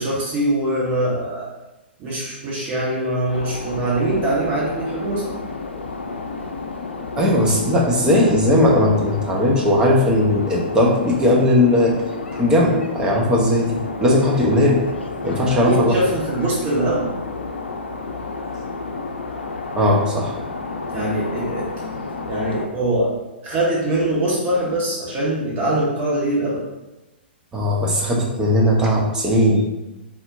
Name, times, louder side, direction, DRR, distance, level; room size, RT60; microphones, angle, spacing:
voice 1, 0.0-1.5 2.0-5.3 15.3-17.1 20.9-21.7 22.3-23.1 23.4-26.6, right 1 dB, 30° right, -6 dB, 1.4 m, -22 dB
sound 1, 3.3-22.7, left 3 dB, 75° left, 0.5 m, -31 dB
voice 2, 7.2-11.9 12.4-14.8 15.2-16.0 19.8-20.3 27.5-29.6, left 1 dB, 10° right, -2 dB, 0.9 m, -17 dB
4.3 x 4.2 x 2.6 m, 1.0 s
figure-of-eight pair, 115°, 6 cm